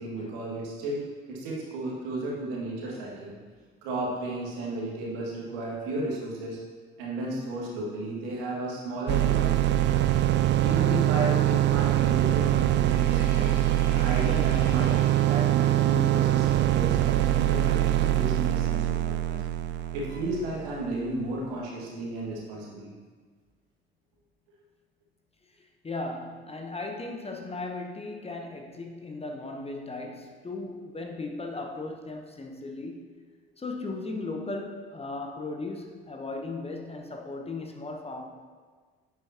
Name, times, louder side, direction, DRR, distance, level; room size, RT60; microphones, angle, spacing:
voice 1, 0.0-3.3 3.8-6.6 7.0-10.1 10.6-13.5 13.9-19.4 19.9-22.9, right 2 dB, 65° right, -4 dB, 2.0 m, -33 dB
voice 2, 2.9-3.2 5.9-6.0 12.0-12.1 14.6-14.7 17.2-17.5 19.8-20.1 21.6-21.9 25.6-33.1 33.6-38.3, left 2 dB, 20° left, 2 dB, 1.0 m, -37 dB
sound 1, 9.1-20.9, right 13 dB, 35° right, 0.4 m, -24 dB
sound 2, 11.3-16.5 19.2-19.5 20.1-20.2, left 1 dB, 80° left, 2.3 m, -48 dB
9.5 x 7.8 x 2.9 m, 1.5 s
figure-of-eight pair, 50°, 30 cm